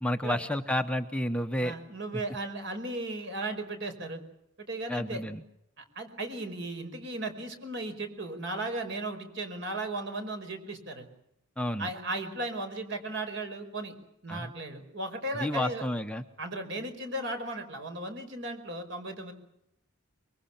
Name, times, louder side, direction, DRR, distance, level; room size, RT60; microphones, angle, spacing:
voice 1, 0.0-1.7 4.9-5.4 11.6-11.9 14.3-14.5 15.3-16.2, left 1 dB, 5° left, 6 dB, 0.8 m, -30 dB
voice 2, 1.6-4.2 4.6-5.2 5.8-11.1 11.8-13.9 14.2-15.9 16.4-19.3, right 2 dB, 55° right, 6 dB, 5.0 m, -36 dB
25.0 x 23.0 x 7.3 m, 0.79 s
head